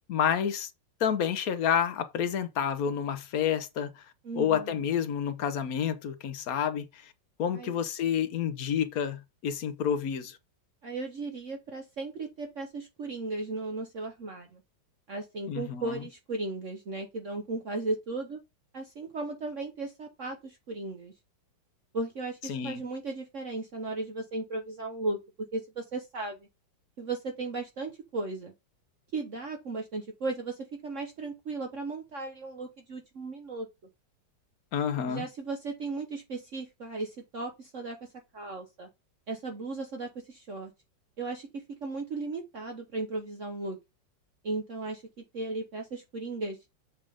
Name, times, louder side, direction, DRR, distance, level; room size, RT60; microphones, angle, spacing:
voice 1, 0.1-0.7 1.0-3.9 4.3-7.1 7.4-10.4 15.5-16.0 22.5-22.8 34.7-35.2, left 8 dB, 60° left, 1.2 m, -29 dB
voice 2, 4.2-4.9 7.5-7.8 10.8-14.6 15.1-18.4 18.7-21.1 21.9-25.2 25.5-26.5 27.0-28.5 29.1-33.7 35.1-38.9 39.3-40.7 41.2-43.8 44.4-46.6, right 3 dB, 50° right, 1.2 m, -36 dB
7.5 x 3.6 x 4.9 m
omnidirectional pair, 2.0 m